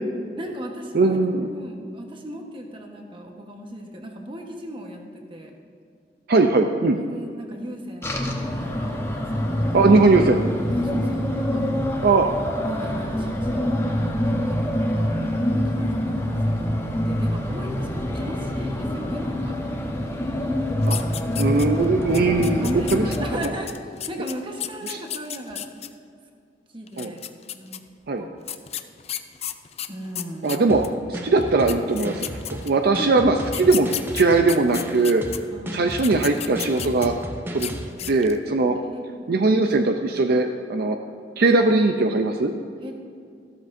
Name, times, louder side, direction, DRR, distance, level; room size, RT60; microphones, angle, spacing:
voice 1, 0.4-1.2 1.4-5.5 6.9-8.2 8.6-9.0 9.4-9.8 10.7-11.7 12.0-12.1 12.6-13.8 14.3-15.2 15.4-16.3 16.6-19.6 22.5-23.7 24.1-25.6 26.7-27.2 27.5-27.8 28.2-28.3 29.9-30.5 33.0-33.3 35.5-36.0 38.7-39.3 42.8-42.9, equal, 30° right, 2 dB, 1.2 m, -36 dB
voice 2, 0.9-1.5 6.3-7.0 9.7-10.4 12.0-12.3 20.9-21.0 21.4-23.1 24.9-25.0 27.0-27.1 28.1-28.2 30.4-30.8 31.1-32.3 32.6-33.9 34.1-35.2 35.7-37.1 37.5-37.7 38.1-38.8 39.3-41.0 41.4-42.5, right 3 dB, 60° right, 5 dB, 0.5 m, -19 dB
sound 1, 8.0-23.4, equal, 15° left, 1.0 m, -25 dB
sound 2, 20.8-21.8 22.1-25.9 26.9-27.8 28.5-30.9 31.4-31.5 31.7-32.9 33.4-35.4 35.9-37.2 37.5-37.7 38.0-38.4, left 11 dB, 35° left, 0.4 m, -33 dB
sound 3, 30.7-37.9, equal, 10° right, 0.8 m, -35 dB
14.0 x 12.5 x 2.7 m, 2.3 s
head